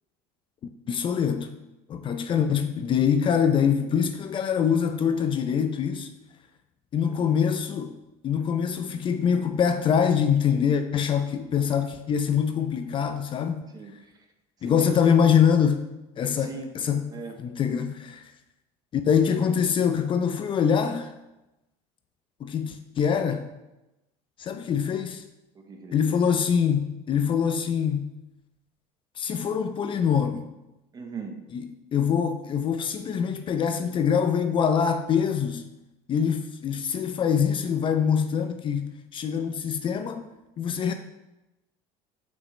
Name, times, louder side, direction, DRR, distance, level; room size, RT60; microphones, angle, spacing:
voice 1, 0.9-1.5 1.9-6.1 6.9-8.0 8.2-13.6 14.6-15.8 16.2-17.1 17.4-18.2 18.9-21.1 22.4-23.5 24.4-25.2 25.9-28.1 29.2-30.5 31.5-35.7 36.1-40.3 40.6-40.9, left 7 dB, 35° left, 0.5 m, -24 dB
voice 2, 13.7-14.3 14.6-15.2 16.2-16.7 17.1-17.4 19.1-19.5 25.5-26.4 30.9-31.5, right 4 dB, 25° right, 1.0 m, -41 dB
7.3 x 5.9 x 3.2 m
supercardioid pair, 105°, 14 cm